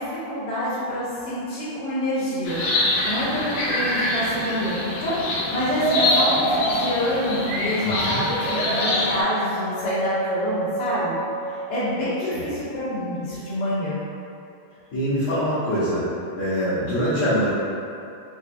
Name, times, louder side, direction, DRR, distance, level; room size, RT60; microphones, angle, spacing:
voice 1, 0.0-11.2 11.4-14.0, left 1 dB, 50° left, -13 dB, 1.9 m, -27 dB
sound 1, 2.5-9.2, left 2 dB, 85° left, 2.6 m, -25 dB
sound 2, 5.7-12.4, right 2 dB, 90° right, 2.7 m, -28 dB
voice 2, 7.8-8.2 12.3-12.4 14.9-16.0 16.4-17.5, equal, 70° left, -13 dB, 1.8 m, -24 dB
5.9 x 2.9 x 2.5 m, 2.6 s
omnidirectional pair, 4.5 m